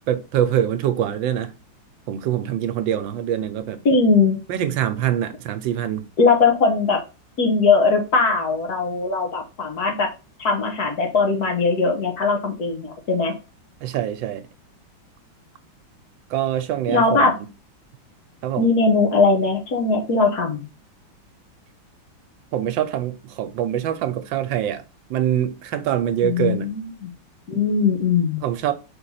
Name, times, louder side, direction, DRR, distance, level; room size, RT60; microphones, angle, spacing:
voice 1, 0.1-1.5 2.1-3.8 4.5-6.1 13.8-14.5 16.3-17.5 18.4-18.7 22.5-24.8 25.1-26.7 28.4-28.7, right 10 dB, 80° right, 1.4 m, -24 dB
voice 2, 3.9-4.4 6.2-7.0 7.4-10.1 10.4-13.3 16.9-17.3 18.6-20.7 26.2-27.1 27.5-28.4, left 4 dB, 55° left, 1.8 m, -20 dB
5.3 x 4.0 x 5.6 m
omnidirectional pair, 2.1 m